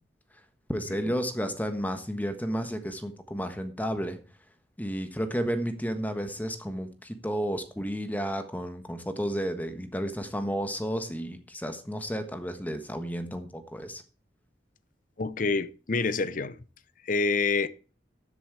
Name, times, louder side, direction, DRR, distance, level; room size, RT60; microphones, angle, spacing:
voice 1, 0.7-4.2 4.8-14.0, equal, 10° left, 1.3 m, -32 dB
voice 2, 15.2-16.6 17.1-17.7, left 4 dB, 50° left, 0.7 m, -27 dB
13.5 x 7.8 x 4.8 m
head